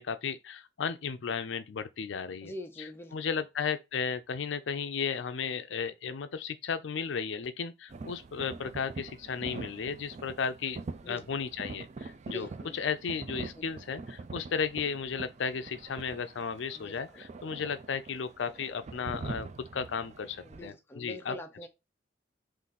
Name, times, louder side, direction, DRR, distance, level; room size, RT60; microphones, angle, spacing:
voice 1, 0.0-10.8 11.1-21.4, left 6 dB, 70° left, 0.5 m, -34 dB
voice 2, 2.4-3.1 11.0-11.2 12.3-12.8 16.7-17.2 20.4-21.7, left 1 dB, 10° left, 0.5 m, -43 dB
sound 1, 7.9-20.7, right 3 dB, 40° right, 0.4 m, -44 dB
3.8 x 2.5 x 4.0 m
head